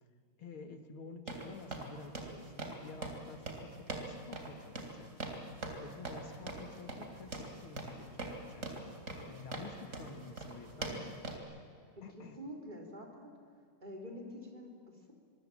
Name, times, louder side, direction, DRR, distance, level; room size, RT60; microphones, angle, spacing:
voice 1, 0.4-5.1 5.8-9.0 9.3-11.4 12.0-12.4, left 4 dB, 75° left, 7 dB, 2.6 m, -50 dB
sound 1, 1.3-11.4, right 2 dB, 35° right, 3.3 m, -43 dB
voice 2, 12.0-13.3 13.8-15.1, equal, 20° right, 1 dB, 3.9 m, -47 dB
24.5 x 24.0 x 7.6 m, 2.4 s
omnidirectional pair, 2.3 m